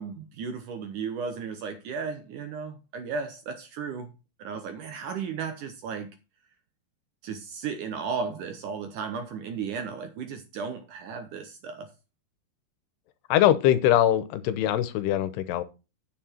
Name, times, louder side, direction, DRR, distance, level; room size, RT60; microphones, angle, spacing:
voice 1, 0.0-4.1 4.4-6.1 7.2-11.9, right 5 dB, 70° right, 2.1 m, -35 dB
voice 2, 13.3-15.6, left 12 dB, 90° left, 2.9 m, -22 dB
9.6 x 6.9 x 4.4 m
omnidirectional pair, 4.7 m